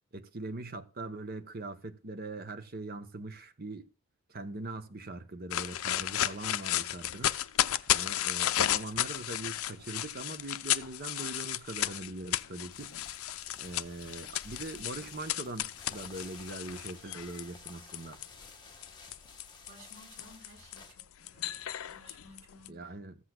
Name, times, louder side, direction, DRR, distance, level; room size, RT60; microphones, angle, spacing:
voice 1, 0.1-3.9 4.3-7.3 7.9-12.9 13.6-18.2 22.7-23.2, right 2 dB, 45° right, 0.9 m, -41 dB
sound 1, 5.5-18.3 18.8-22.7, left 12 dB, 80° left, 0.5 m, -33 dB
sound 2, 12.7-20.9, left 4 dB, 20° left, 1.7 m, -52 dB
voice 2, 19.7-23.0, equal, 60° right, 4.5 m, -56 dB
14.5 x 8.0 x 2.3 m
head